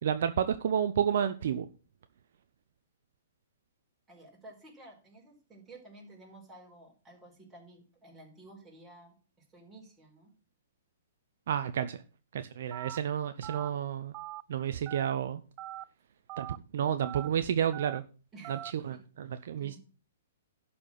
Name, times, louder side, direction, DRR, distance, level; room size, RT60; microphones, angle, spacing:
voice 1, 0.0-1.7 11.5-12.0 12.3-14.1 14.5-15.4 16.4-16.5 16.7-18.0 18.5-18.6 18.8-19.8, right 9 dB, 60° right, 10 dB, 0.7 m, -30 dB
voice 2, 4.1-10.3 18.3-18.6 18.9-19.0 19.6-19.8, right 2 dB, 15° right, -2 dB, 4.5 m, -53 dB
Telephone, 12.7-13.0 13.4-13.7 14.1-14.4 14.9-15.1 15.6-15.8 16.3-16.6 17.0-17.3 17.7-18.0 18.4-18.7, right 15 dB, 35° right, 0.4 m, -41 dB
11.5 x 4.4 x 7.4 m, 0.37 s
figure-of-eight pair, 120°, 0 cm